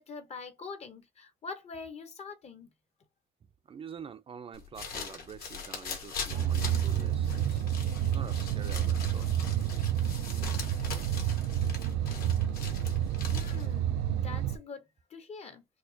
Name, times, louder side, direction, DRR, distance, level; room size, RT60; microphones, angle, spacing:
voice 1, 0.0-2.7 13.3-15.7, left 5 dB, 40° left, 0.9 m, -44 dB
voice 2, 3.6-7.6 8.1-9.5, right 7 dB, 35° right, 0.5 m, -47 dB
sound 1, 4.5-13.8, left 5 dB, 60° left, 1.5 m, -42 dB
sound 2, 6.3-14.6, right 10 dB, 85° right, 0.4 m, -29 dB
4.2 x 2.4 x 2.7 m
cardioid pair, 110°, 17 cm